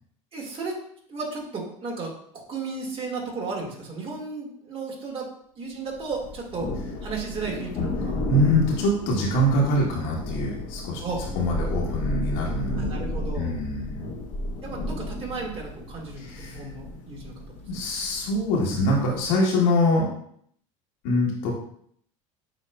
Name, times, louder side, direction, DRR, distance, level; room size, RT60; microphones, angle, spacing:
voice 1, 0.3-0.8 1.1-5.3 5.6-6.7 7.0-8.2 11.0-11.2 12.7-13.6 14.6-17.3, right 4 dB, 35° right, -1 dB, 1.8 m, -34 dB
Thunder, 6.1-19.3, left 2 dB, 50° left, 1.2 m, -33 dB
voice 2, 8.3-11.0 11.3-12.9 13.3-14.1 16.2-16.6 17.7-20.1 21.0-21.5, left 1 dB, 70° left, -3 dB, 1.3 m, -24 dB
7.7 x 2.8 x 2.3 m, 0.65 s
hypercardioid pair, 85°, 17 cm